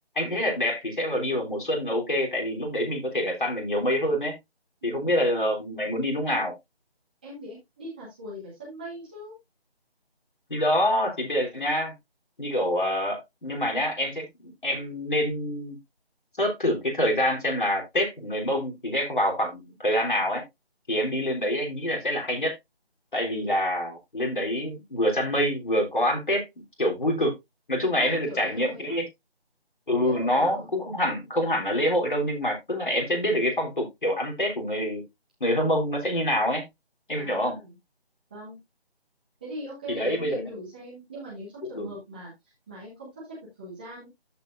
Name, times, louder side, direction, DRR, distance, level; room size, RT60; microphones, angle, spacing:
voice 1, 0.1-4.3 4.8-6.5 10.5-11.9 12.4-15.8 16.4-20.4 20.9-22.5 23.1-26.4 26.8-27.3 27.7-29.0 29.9-35.0 35.4-36.6 37.1-37.6 39.9-40.4 41.7-41.9, equal, 50° left, 3.4 m, -26 dB
voice 2, 4.8-5.1 7.2-9.3 28.0-29.0 30.0-30.7 37.2-37.7 38.3-38.6 39.4-44.1, right 1 dB, 10° right, 1.6 m, -41 dB
14.0 x 5.0 x 2.5 m
figure-of-eight pair, 160°, 32 cm